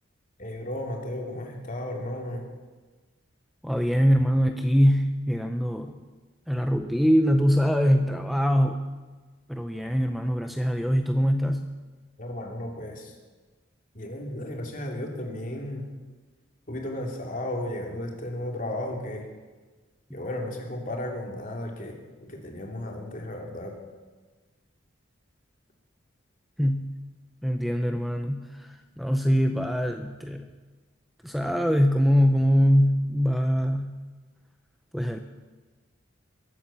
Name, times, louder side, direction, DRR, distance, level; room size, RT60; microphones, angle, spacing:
voice 1, 0.4-2.4 12.2-13.1 13.9-15.8 16.7-19.2 20.1-21.9 22.2-23.7, left 1 dB, 45° left, 1 dB, 2.8 m, -34 dB
voice 2, 3.6-6.0 6.5-8.8 9.5-11.7 20.1-20.2 26.6-26.9 27.4-30.5 31.2-34.0 34.9-35.2, equal, ahead, 6 dB, 0.6 m, -23 dB
22.5 x 8.8 x 7.0 m, 1.3 s
head